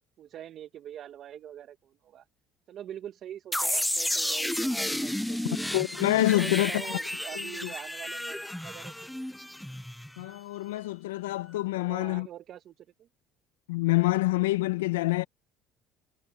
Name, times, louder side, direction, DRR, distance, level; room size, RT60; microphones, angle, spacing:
voice 1, 0.2-2.2 2.7-5.7 6.3-8.9 11.7-13.1, right 11 dB, 55° right, 1.2 m, -44 dB
sound 1, 3.5-10.3, left 1 dB, 5° left, 0.4 m, -32 dB
voice 2, 5.7-6.7 7.4-7.5 10.2-12.3 13.7-15.2, left 18 dB, 90° left, 0.7 m, -26 dB
hypercardioid pair, 75°, 0 cm